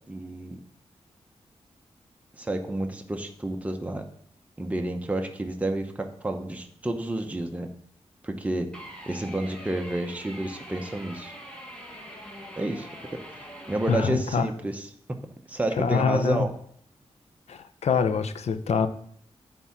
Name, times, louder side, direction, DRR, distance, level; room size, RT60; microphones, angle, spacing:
voice 1, 0.1-0.6 2.4-4.0 4.6-7.7 8.2-8.7 9.1-11.3 12.6-12.9 13.7-14.9 15.5-16.5, right 1 dB, 10° right, 0.7 m, -30 dB
sound 1, 8.7-14.0, equal, 10° left, 1.5 m, -43 dB
voice 2, 13.9-14.5 15.8-16.5 17.5-18.9, left 6 dB, 75° left, 0.6 m, -25 dB
8.8 x 3.7 x 6.9 m
wide cardioid pair, 135°, 11 cm